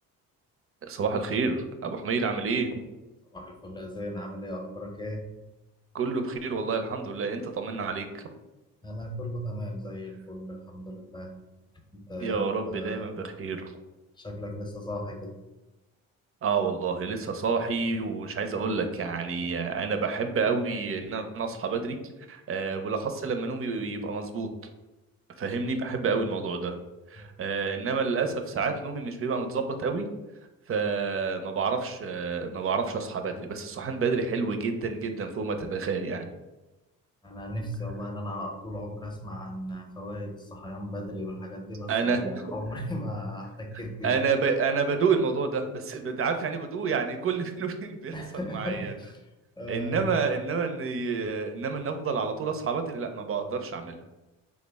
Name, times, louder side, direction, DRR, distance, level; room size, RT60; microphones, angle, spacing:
voice 1, 0.8-2.9 5.9-8.2 12.2-13.7 16.4-22.0 22.3-24.5 25.4-26.8 27.1-30.1 30.7-36.3 41.9-42.5 44.0-48.9 49.7-54.0, right 5 dB, 40° right, 6 dB, 0.5 m, -29 dB
voice 2, 3.3-5.2 8.8-11.3 11.9-13.1 14.2-15.4 27.2-27.3 37.2-44.2 48.1-49.2 49.6-50.1, equal, 15° left, 2 dB, 0.6 m, -36 dB
3.5 x 2.1 x 3.4 m, 1.0 s
cardioid pair, 75°, 35 cm